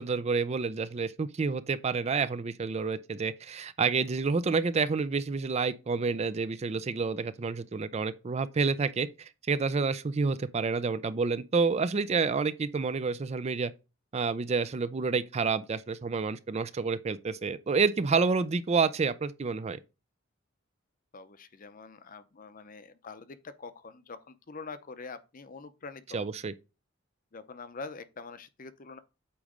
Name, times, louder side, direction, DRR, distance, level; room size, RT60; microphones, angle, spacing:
voice 1, 0.0-13.7 14.1-19.8 26.1-26.5, right 4 dB, 35° right, 0.4 m, -29 dB
voice 2, 21.1-26.3 27.3-29.0, left 4 dB, 45° left, 0.6 m, -45 dB
8.6 x 3.1 x 5.0 m
head